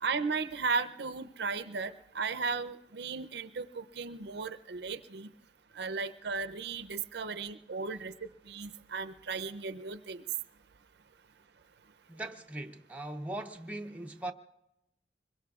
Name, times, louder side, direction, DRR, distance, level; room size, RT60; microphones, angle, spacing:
voice 1, 0.0-5.3 5.7-10.2, right 4 dB, 60° right, 0.5 m, -35 dB
voice 2, 12.1-14.3, right 1 dB, 10° right, 0.5 m, -40 dB
25.5 x 22.0 x 2.4 m
head